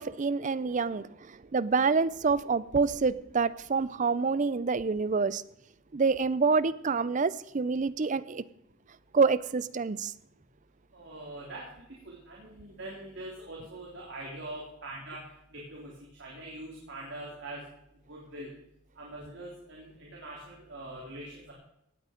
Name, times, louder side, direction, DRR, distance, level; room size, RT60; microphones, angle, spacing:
voice 1, 0.0-5.4 5.9-8.4 9.1-10.1, right 4 dB, 35° right, 0.5 m, -27 dB
voice 2, 10.9-15.2 15.5-15.9 16.2-17.6 18.1-18.5 19.0-21.5, right 1 dB, 60° right, 3.3 m, -43 dB
17.5 x 9.2 x 5.1 m
head